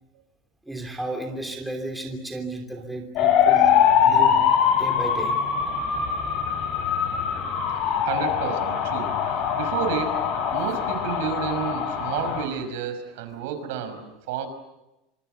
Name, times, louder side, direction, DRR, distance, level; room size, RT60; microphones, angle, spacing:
voice 1, 0.7-3.7 4.0-4.5 4.8-5.4, right 2 dB, 5° right, 2 dB, 3.1 m, -33 dB
sound 1, 3.2-12.4, left 8 dB, 40° left, 4.8 m, -22 dB
voice 2, 8.0-14.5, right 8 dB, 70° right, 9 dB, 5.8 m, -31 dB
29.5 x 25.5 x 6.8 m, 0.97 s
cardioid pair, 180°, 0 cm